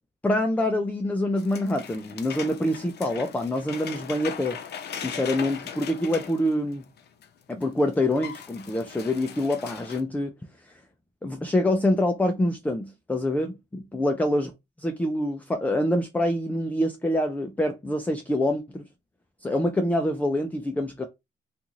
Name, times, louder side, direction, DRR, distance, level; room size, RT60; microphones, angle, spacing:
voice 1, 0.2-4.6 4.9-6.8 7.5-10.3 11.2-14.5 14.8-18.8 19.4-21.1, left 1 dB, 10° left, 0.4 m, -26 dB
sound 1, 1.4-7.3 7.6-7.7 7.9-10.0, left 7 dB, 55° left, 0.6 m, -39 dB
2.5 x 2.4 x 2.9 m
cardioid pair, 90°, 20 cm